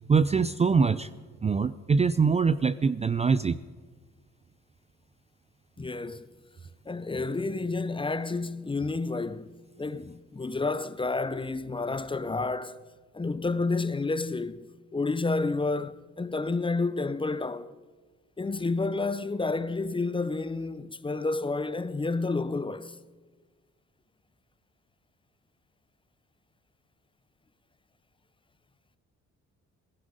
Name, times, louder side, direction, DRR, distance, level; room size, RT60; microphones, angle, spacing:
voice 1, 0.1-1.1 1.4-3.6, right 5 dB, 20° right, 0.4 m, -23 dB
voice 2, 5.8-6.3 6.9-12.8 13.1-17.7 18.4-23.0, left 3 dB, 15° left, 0.7 m, -30 dB
18.0 x 15.5 x 5.1 m
cardioid pair, 90°, 30 cm